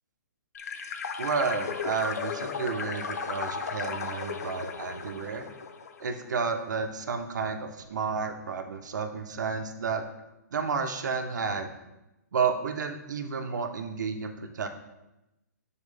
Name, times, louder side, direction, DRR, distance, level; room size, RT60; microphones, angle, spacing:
sound 1, 0.5-6.3, left 6 dB, 60° left, 0.5 m, -35 dB
voice 1, 1.2-5.4 6.0-10.0 10.5-11.7 12.3-14.7, right 5 dB, 75° right, 6 dB, 0.8 m, -31 dB
7.3 x 4.4 x 3.3 m, 0.96 s
hypercardioid pair, 165°, 10 cm